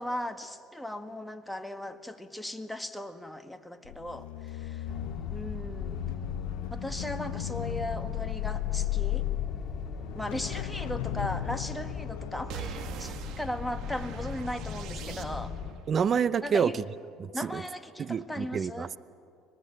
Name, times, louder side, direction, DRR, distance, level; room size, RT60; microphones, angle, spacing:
voice 1, 0.0-4.8 5.3-6.0 6.7-9.3 10.1-15.6 16.4-16.7 17.3-18.9, left 1 dB, 5° left, 7 dB, 1.8 m, -37 dB
sound 1, 3.8-14.2 14.5-14.8, left 16 dB, 85° left, 0.7 m, -36 dB
sound 2, 4.9-15.7, left 4 dB, 35° left, 2.9 m, -39 dB
sound 3, 12.5-15.7, right 7 dB, 65° right, 2.0 m, -42 dB
voice 2, 15.9-16.8 17.2-17.6 18.0-19.0, right 7 dB, 40° right, 17 dB, 0.7 m, -28 dB
25.5 x 19.0 x 9.1 m, 2.5 s
supercardioid pair, 80°, 0 cm